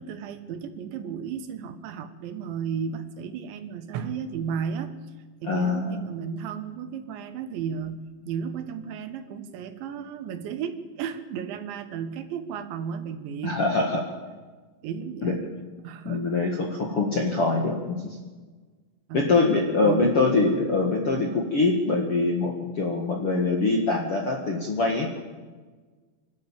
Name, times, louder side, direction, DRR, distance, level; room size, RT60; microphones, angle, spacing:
voice 1, 0.0-4.9 5.4-8.0 8.3-13.6 14.8-15.5 15.8-16.4 19.1-19.3 19.8-20.1, right 7 dB, 80° right, 9 dB, 3.6 m, -34 dB
voice 2, 5.4-6.1 13.4-14.0 15.2-15.3 16.0-18.2 19.1-25.1, left 3 dB, 50° left, 1 dB, 1.8 m, -24 dB
25.0 x 13.0 x 8.9 m, 1.4 s
omnidirectional pair, 5.2 m